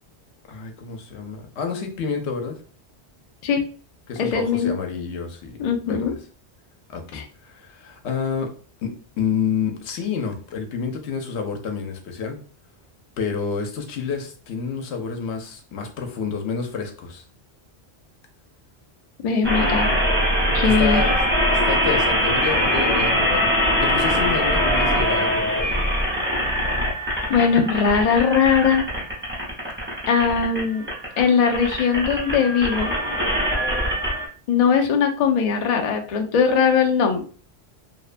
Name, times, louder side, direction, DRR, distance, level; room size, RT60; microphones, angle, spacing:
voice 1, 0.5-2.6 4.1-6.1 6.9-8.5 8.8-8.9 9.2-12.4 13.2-17.2 20.6-21.2 21.5-25.8, left 6 dB, 85° left, 4 dB, 0.9 m, -29 dB
voice 2, 4.2-4.7 5.6-6.1 7.1-7.2 19.2-20.0 20.5-21.0 27.3-28.8 30.1-30.9 31.2-32.9 34.5-37.2, left 6 dB, 55° left, 3 dB, 0.4 m, -20 dB
sound 1, 19.4-34.3, equal, 10° right, 0.7 m, -22 dB
2.7 x 2.1 x 2.4 m, 0.41 s
omnidirectional pair, 1.1 m